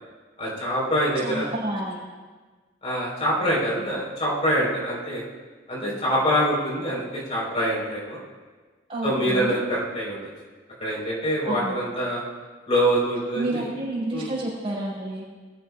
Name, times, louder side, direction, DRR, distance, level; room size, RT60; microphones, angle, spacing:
voice 1, 0.4-1.5 2.8-5.2 5.7-8.2 9.0-10.3 10.8-12.2 12.7-13.7 14.1-14.3, equal, 35° left, -5 dB, 4.3 m, -25 dB
voice 2, 1.2-2.0 8.9-9.6 11.5-11.8 13.3-15.2, right 2 dB, 30° right, -6 dB, 5.1 m, -29 dB
21.5 x 14.0 x 2.4 m, 1.4 s
head